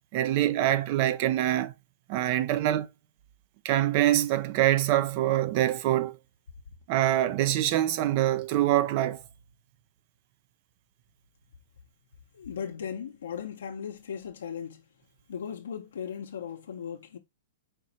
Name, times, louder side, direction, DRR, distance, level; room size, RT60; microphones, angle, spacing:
voice 1, 0.1-1.7 2.1-2.9 3.6-6.2 6.9-9.2, right 13 dB, 45° right, 0.5 m, -25 dB
voice 2, 12.3-14.9 15.3-17.2, left 7 dB, 85° left, 0.7 m, -37 dB
5.1 x 3.0 x 2.8 m
hypercardioid pair, 140°, 0 cm